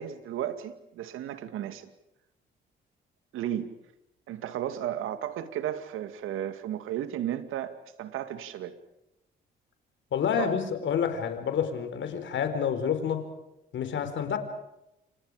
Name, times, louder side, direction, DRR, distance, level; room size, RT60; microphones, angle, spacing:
voice 1, 0.0-1.9 3.3-3.8 4.3-8.7 10.4-10.5, right 11 dB, 75° right, 10 dB, 2.4 m, -34 dB
voice 2, 10.1-13.3 13.7-14.4, left 7 dB, 65° left, 8 dB, 4.5 m, -28 dB
29.0 x 27.0 x 5.1 m, 0.86 s
supercardioid pair, 60°, 21 cm